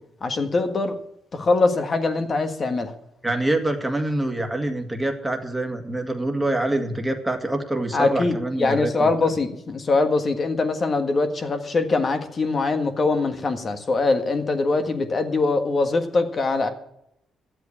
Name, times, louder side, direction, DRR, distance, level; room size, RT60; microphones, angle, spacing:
voice 1, 0.2-0.9 1.3-2.9 7.9-16.7, left 3 dB, 40° left, 1.6 m, -22 dB
voice 2, 3.2-9.3, right 1 dB, 5° right, 2.0 m, -25 dB
12.0 x 8.0 x 8.5 m
cardioid pair, 90°, 0 cm